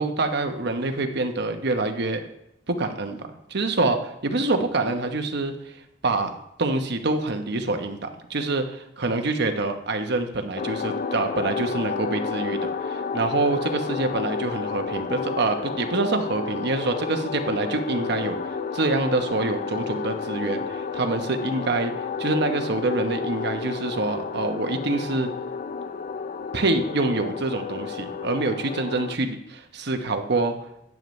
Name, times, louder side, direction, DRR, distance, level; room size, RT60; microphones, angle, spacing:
voice 1, 0.0-2.2 2.7-3.2 3.5-5.5 6.0-6.3 6.6-21.9 22.2-25.3 26.5-30.5, right 2 dB, 60° right, 6 dB, 1.1 m, -26 dB
sound 1, 10.6-29.1, left 5 dB, 45° left, 0.5 m, -31 dB
12.5 x 9.3 x 3.2 m, 0.79 s
head